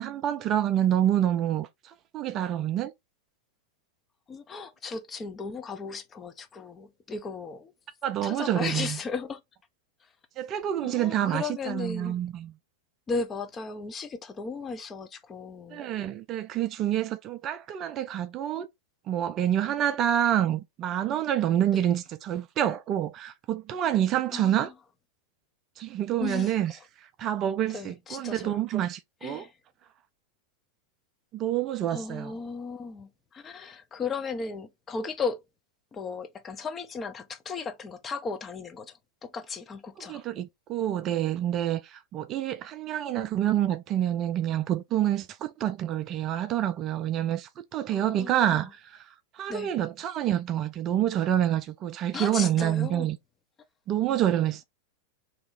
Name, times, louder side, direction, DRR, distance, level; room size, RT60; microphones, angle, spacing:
voice 1, 0.0-2.9 8.0-9.0 10.4-12.5 15.7-18.7 19.1-24.7 25.8-26.7 27.2-29.5 31.3-32.3 40.1-49.1 49.4-53.2 53.9-54.6, right 11 dB, 35° right, 0.4 m, -27 dB
voice 2, 4.3-7.7 8.2-9.4 10.8-12.2 13.1-15.9 21.7-21.9 24.3-24.7 26.2-26.6 27.7-28.7 29.2-29.5 31.9-35.4 35.9-38.9 39.2-40.2 47.9-48.7 49.5-49.7 52.1-53.1, left 4 dB, 20° left, 0.6 m, -36 dB
3.1 x 2.8 x 3.7 m
figure-of-eight pair, 90°, 0 cm